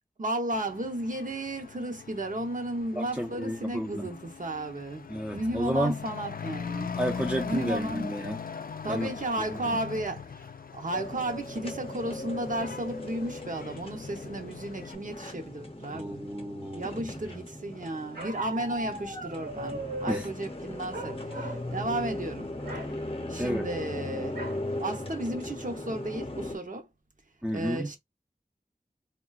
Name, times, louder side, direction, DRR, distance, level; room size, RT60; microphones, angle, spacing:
voice 1, 0.2-6.9 7.4-8.1 8.8-16.3 16.7-22.5 23.3-24.5 24.8-26.9 27.5-28.0, right 1 dB, 55° right, 0.7 m, -34 dB
Truck / Accelerating revving vroom, 0.5-15.0, left 6 dB, 65° left, 0.4 m, -41 dB
voice 2, 2.9-4.1 5.1-6.0 7.0-8.4 8.9-9.1 15.9-16.9 20.1-20.3 23.4-23.7 27.4-27.9, equal, 10° right, 0.4 m, -31 dB
sound 1, 10.9-26.6, left 1 dB, 35° left, 0.8 m, -38 dB
Bark, 18.1-20.3 20.9-21.7 22.0-22.2 22.6-22.9 24.3-24.6 25.2-25.3 25.6-26.0, right 1 dB, 80° right, 1.0 m, -38 dB
3.7 x 2.2 x 2.3 m
wide cardioid pair, 55°, 16 cm